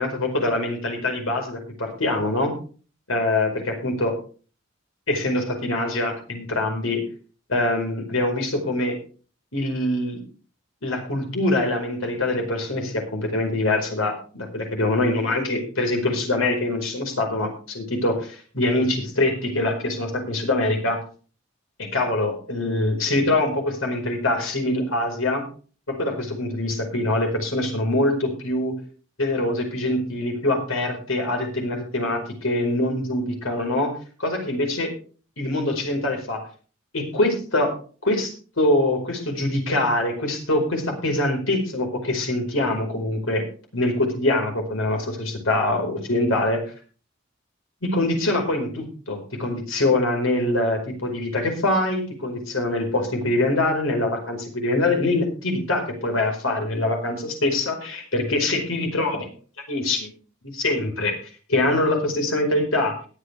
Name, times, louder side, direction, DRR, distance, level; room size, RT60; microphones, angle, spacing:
voice 1, 0.0-2.5 3.1-4.2 5.1-7.0 7.5-9.0 9.5-10.2 10.8-21.0 21.8-25.4 25.9-28.8 29.2-33.9 34.2-34.9 35.4-36.4 36.9-37.8 38.0-43.4 43.7-46.6 47.8-59.3 59.7-60.1 60.4-61.1 61.5-62.9, left 2 dB, 85° left, 3 dB, 4.8 m, -24 dB
21.5 x 8.2 x 3.4 m, 0.38 s
head